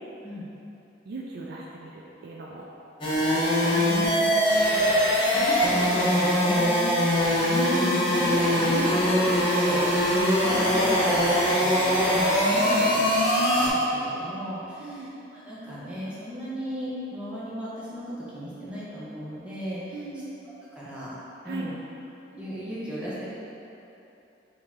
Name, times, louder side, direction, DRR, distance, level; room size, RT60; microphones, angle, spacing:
voice 1, 1.1-2.6 3.3-4.5 10.5-10.7 12.6-13.0 14.8-15.2 19.9-20.3 21.4-21.7, right 2 dB, 55° right, -3 dB, 0.4 m, -39 dB
sound 1, 3.0-13.7, equal, 30° left, 0.8 m, -22 dB
voice 2, 3.8-4.5 4.9-13.0 13.3-20.0 20.7-21.2 21.4-21.8 22.3-23.3, equal, 5° right, -10 dB, 0.9 m, -35 dB
4.6 x 2.8 x 3.6 m, 2.9 s
head